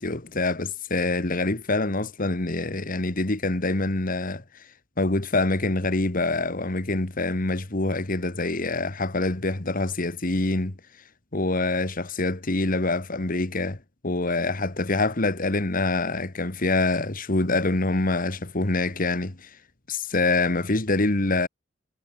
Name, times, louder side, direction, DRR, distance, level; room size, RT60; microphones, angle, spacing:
voice 1, 0.0-4.4 5.0-10.8 11.3-13.8 14.0-19.5 19.9-21.5, left 2 dB, 45° left, 1.8 m, -25 dB
head